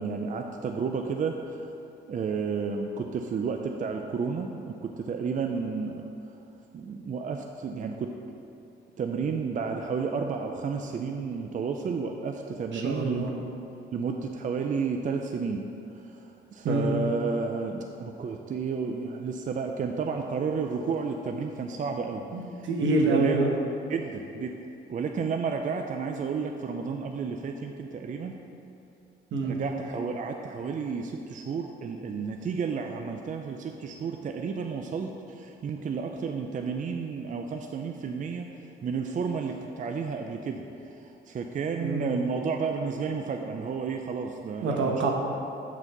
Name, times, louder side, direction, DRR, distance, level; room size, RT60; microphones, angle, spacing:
voice 1, 0.0-1.7 2.1-6.1 6.7-8.1 9.0-13.4 13.9-15.6 15.9-22.2 22.6-22.7 23.0-23.4 23.9-24.6 24.9-28.4 29.4-38.5 38.8-45.0, right 5 dB, 40° right, 4 dB, 0.5 m, -31 dB
voice 2, 12.7-13.3 16.6-16.9 22.3-23.5 29.3-29.6 41.8-42.1 44.6-45.1, right 2 dB, 70° right, 0 dB, 1.2 m, -26 dB
7.3 x 4.1 x 6.6 m, 2.8 s
cardioid pair, 90°, 20 cm